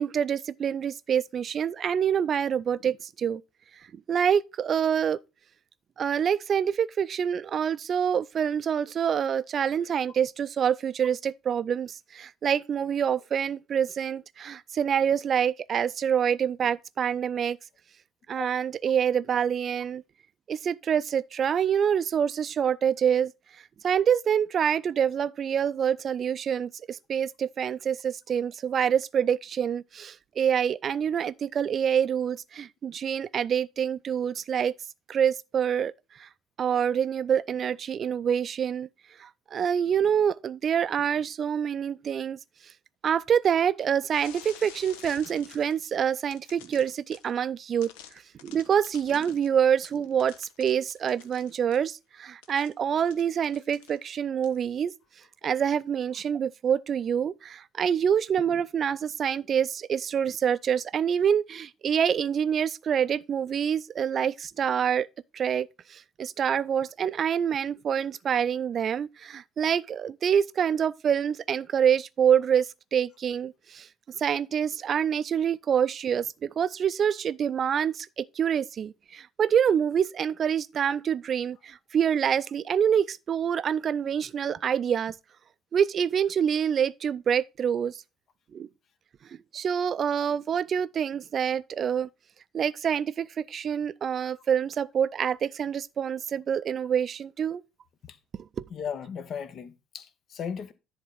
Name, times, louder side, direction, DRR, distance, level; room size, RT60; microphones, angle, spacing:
voice 1, 0.0-3.4 4.1-5.2 6.0-17.6 18.3-20.0 20.5-23.3 23.8-34.7 35.1-35.9 36.2-36.3 36.6-38.9 39.2-42.4 43.0-47.9 48.4-54.9 55.4-65.1 65.3-73.9 74.2-85.1 85.7-88.0 88.5-88.7 89.5-92.1 92.5-97.6 98.4-98.6, right 8 dB, 45° right, 0.5 m, -26 dB
sound 1, 44.1-45.9 46.3-47.3 47.8-51.9 52.4-54.2 54.4-54.7, left 9 dB, 70° left, 0.8 m, -50 dB
voice 2, 98.7-100.7, left 7 dB, 50° left, 1.1 m, -36 dB
10.5 x 3.6 x 5.7 m
figure-of-eight pair, 55°, 0 cm